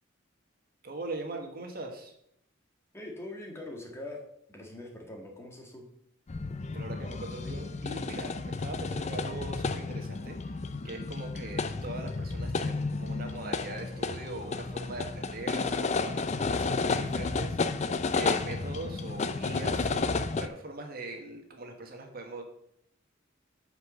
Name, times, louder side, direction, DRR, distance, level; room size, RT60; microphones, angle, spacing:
voice 1, 0.8-2.1 6.7-10.6 10.8-22.4, right 2 dB, 50° right, 4 dB, 1.4 m, -41 dB
voice 2, 2.9-4.2 4.5-5.9, left 1 dB, 15° left, 1 dB, 1.7 m, -42 dB
sound 1, 6.3-20.5, left 4 dB, 35° left, 0.5 m, -32 dB
8.0 x 5.6 x 6.4 m, 0.73 s
head